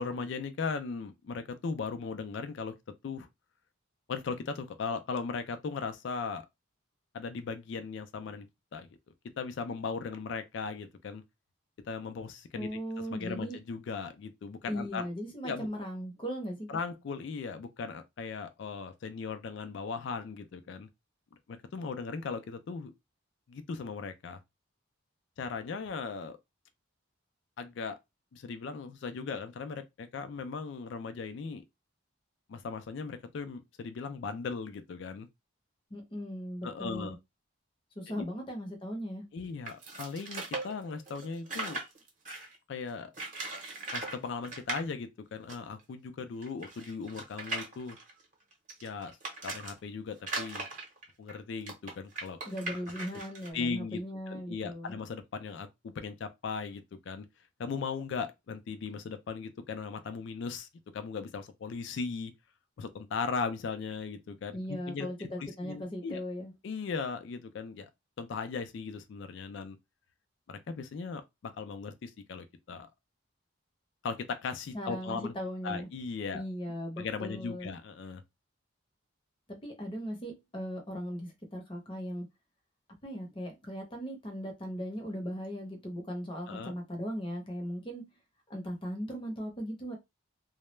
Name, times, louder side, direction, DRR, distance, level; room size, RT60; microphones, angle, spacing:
voice 1, 0.0-2.7 3.0-3.3 4.1-6.5 7.1-8.5 8.7-8.9 9.4-11.2 11.9-12.7 13.1-15.1 15.4-15.7 16.7-20.9 21.5-22.9 23.5-24.4 25.4-26.4 27.6-28.0 28.3-31.6 32.5-35.3 36.6-37.2 38.2-38.3 39.3-41.8 42.7-43.1 43.9-48.0 48.8-49.2 49.4-50.7 51.2-52.4 53.5-54.0 54.3-55.7 56.0-57.3 57.6-62.3 62.8-65.1 65.4-66.2 66.6-67.9 68.2-69.8 70.5-72.9 74.0-75.3 75.6-76.4 77.0-78.2 86.5-86.7, left 5 dB, 60° left, 0.3 m, -38 dB
voice 2, 12.6-13.6 14.7-16.8 35.9-37.2 38.0-39.2 52.4-55.0 64.5-66.5 74.7-75.9 76.3-77.7 79.5-82.3 83.0-88.2 88.5-90.0, equal, 25° left, 0.7 m, -38 dB
sound 1, 39.7-42.6 43.1-44.2 44.4-44.8 45.5-45.6 45.8-45.9 46.4-49.7 50.2-53.5, right 3 dB, 40° right, 0.8 m, -39 dB
2.2 x 2.0 x 3.1 m
head